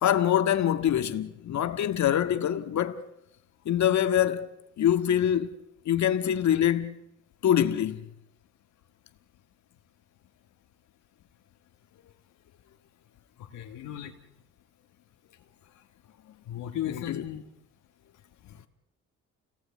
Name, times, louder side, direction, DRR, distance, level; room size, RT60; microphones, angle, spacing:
voice 1, 0.0-3.0 3.7-4.5 4.8-5.6 5.9-7.0 7.4-8.0 16.9-17.2, left 10 dB, 65° left, 1.8 m, -24 dB
voice 2, 13.5-14.1 16.5-17.4, left 11 dB, 85° left, 1.9 m, -35 dB
29.5 x 19.0 x 8.5 m
cardioid pair, 90°, 30 cm